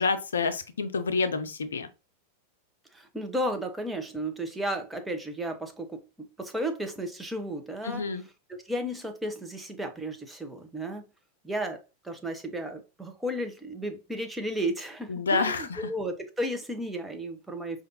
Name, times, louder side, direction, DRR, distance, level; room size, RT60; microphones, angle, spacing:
voice 1, 0.0-1.9 7.8-8.2 15.1-15.8, left 4 dB, 70° left, 0.5 m, -28 dB
voice 2, 2.9-8.1 8.6-11.0 11.4-17.8, right 1 dB, 5° right, 0.8 m, -33 dB
5.0 x 2.5 x 2.8 m
figure-of-eight pair, 90°, 0 cm